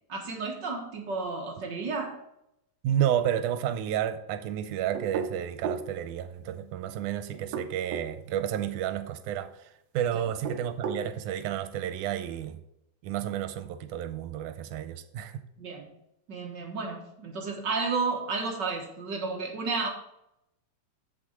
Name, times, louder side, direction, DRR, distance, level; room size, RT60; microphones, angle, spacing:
voice 1, 0.1-2.2 15.6-15.9 16.3-19.9, right 4 dB, 50° right, 1 dB, 1.4 m, -32 dB
voice 2, 2.8-9.7 9.9-12.6 13.0-15.4, right 10 dB, 90° right, 9 dB, 2.1 m, -31 dB
sound 1, 4.9-5.9 7.3-8.1 10.3-11.1, right 5 dB, 70° right, 1.5 m, -34 dB
7.6 x 7.4 x 5.3 m, 0.83 s
omnidirectional pair, 3.5 m